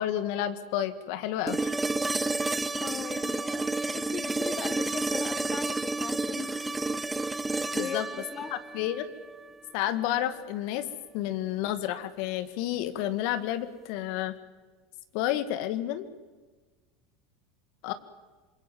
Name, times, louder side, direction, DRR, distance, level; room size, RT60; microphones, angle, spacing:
voice 1, 0.0-1.7 7.7-8.1 8.5-9.1 9.7-10.9 11.1-14.4 15.1-16.1 17.8-17.9, left 12 dB, 65° left, 12 dB, 2.0 m, -30 dB
sound 1, 1.5-9.5 11.6-11.7, right 3 dB, 10° right, 1.0 m, -31 dB
voice 2, 2.8-6.8 7.7-8.6, left 6 dB, 35° left, 15 dB, 1.5 m, -39 dB
26.5 x 22.5 x 7.5 m, 1.3 s
hypercardioid pair, 90°, 0 cm